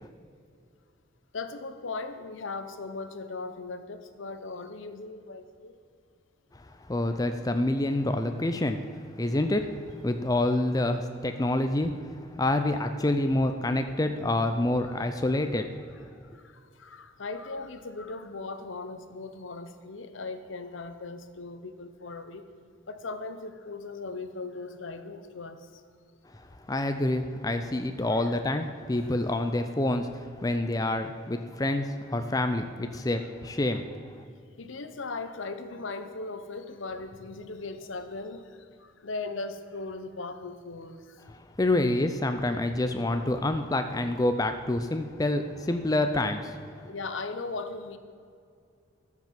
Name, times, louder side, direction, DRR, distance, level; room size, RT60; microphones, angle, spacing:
voice 1, 1.3-5.8 14.8-14.9 16.3-22.4 22.9-25.8 28.1-28.4 29.0-29.2 34.6-41.3 46.8-48.0, left 3 dB, 70° left, 9 dB, 0.9 m, -38 dB
voice 2, 6.5-8.8 9.2-15.7 26.3-34.0 41.3-46.6, left 1 dB, 20° left, 7 dB, 0.5 m, -27 dB
13.5 x 6.0 x 7.5 m, 2.3 s
head